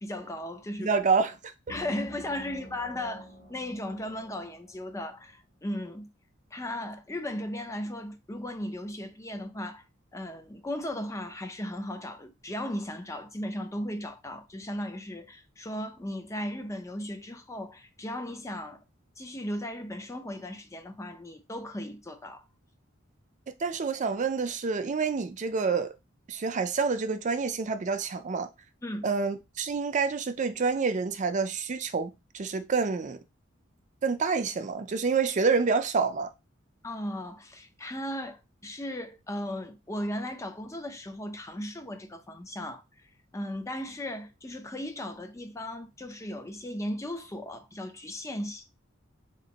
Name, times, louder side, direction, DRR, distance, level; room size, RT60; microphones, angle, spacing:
voice 1, 0.0-0.9 1.7-6.1 6.5-9.8 10.1-18.8 19.2-22.4 28.8-29.1 36.8-42.8 43.3-48.8, left 1 dB, 15° left, 0.5 m, -36 dB
voice 2, 0.8-1.3 23.6-25.9 26.3-28.5 29.0-33.2 34.0-36.3, right 5 dB, 35° right, 0.5 m, -27 dB
sound 1, 1.7-5.2, equal, 45° left, 1.3 m, -47 dB
3.7 x 2.6 x 4.0 m
head